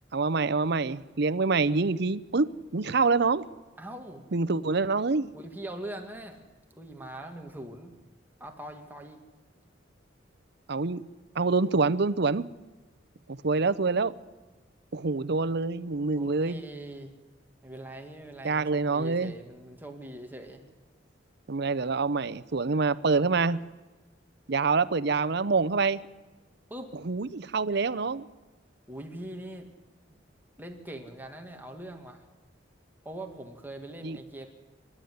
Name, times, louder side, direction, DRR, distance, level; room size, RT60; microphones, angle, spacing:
voice 1, 0.1-3.4 4.3-5.3 10.7-11.0 11.4-12.5 13.3-14.1 14.9-16.6 18.4-19.3 21.5-23.6 24.5-26.0 27.1-28.3 34.0-34.2, right 4 dB, 65° right, 0.7 m, -26 dB
voice 2, 3.8-4.2 5.3-6.4 6.7-7.9 8.4-9.2 16.2-17.1 17.6-20.6 26.7-26.9 28.9-29.7 30.6-32.3 33.0-34.5, right 1 dB, 10° right, 2.2 m, -42 dB
27.0 x 12.0 x 9.5 m
head